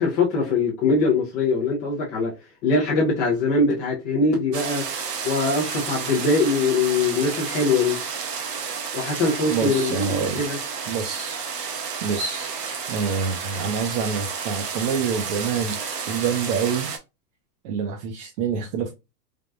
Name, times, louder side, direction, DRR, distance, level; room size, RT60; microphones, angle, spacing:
voice 1, 0.0-2.3 2.6-4.8 5.2-8.0 8.9-10.6, left 3 dB, 20° left, 0.3 m, -22 dB
sound 1, 4.5-17.0, right 6 dB, 85° right, 1.0 m, -31 dB
voice 2, 9.5-10.5 10.9-11.4 12.0-12.5 12.9-15.8 16.1-16.9 17.6-18.9, right 6 dB, 45° right, 0.6 m, -26 dB
3.4 x 2.1 x 2.4 m
supercardioid pair, 140°, 47 cm